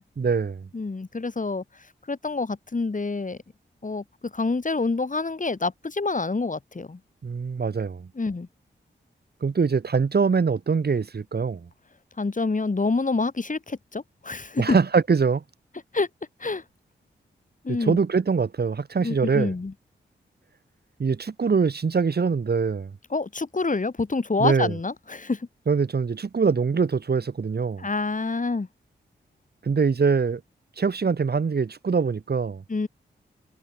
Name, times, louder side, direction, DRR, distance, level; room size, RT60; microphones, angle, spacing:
voice 1, 0.2-0.7 7.2-8.1 9.4-11.6 14.6-15.4 17.7-19.5 21.0-22.9 24.4-24.7 25.7-27.9 29.6-30.4 30.8-32.6, right 5 dB, 55° right, 1.7 m, -23 dB
voice 2, 0.7-1.6 2.1-3.4 3.8-7.0 8.1-8.5 12.2-14.8 15.9-16.1 16.4-16.6 17.6-18.0 19.0-19.7 23.1-25.5 27.8-28.7 32.7-32.9, left 3 dB, 40° left, 4.8 m, -27 dB
cardioid pair, 50°, 20 cm